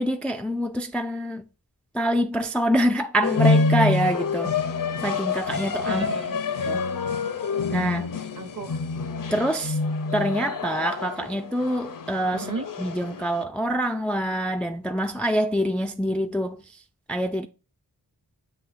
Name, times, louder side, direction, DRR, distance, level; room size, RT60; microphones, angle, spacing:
voice 1, 0.0-1.4 1.9-4.6 5.0-6.0 6.7-6.9 7.7-8.1 9.3-9.8 10.1-12.5 12.8-16.6 17.1-17.5, equal, 5° left, 0.3 m, -25 dB
sound 1, 3.2-13.4, left 4 dB, 55° left, 0.6 m, -27 dB
voice 2, 5.8-6.8 8.4-8.8 12.3-12.6, right 4 dB, 45° right, 0.8 m, -35 dB
7.5 x 2.8 x 2.5 m
wide cardioid pair, 50°, 40 cm